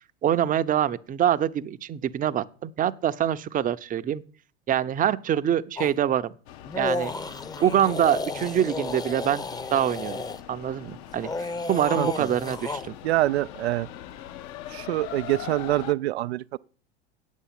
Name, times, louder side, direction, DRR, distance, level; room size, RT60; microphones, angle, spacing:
voice 1, 0.2-4.2 4.7-6.3 6.8-7.1 7.6-9.4 9.7-10.2 10.5-12.9, right 10 dB, 25° right, 0.7 m, -25 dB
sound 1, 5.8-5.9 6.7-10.4 11.1-12.9, left 3 dB, 10° left, 0.8 m, -32 dB
sound 2, 6.5-15.9, left 11 dB, 55° left, 1.0 m, -42 dB
voice 2, 12.0-12.3 13.0-13.9 14.7-16.6, right 16 dB, 80° right, 0.5 m, -25 dB
8.3 x 8.3 x 7.5 m
hypercardioid pair, 95°, 32 cm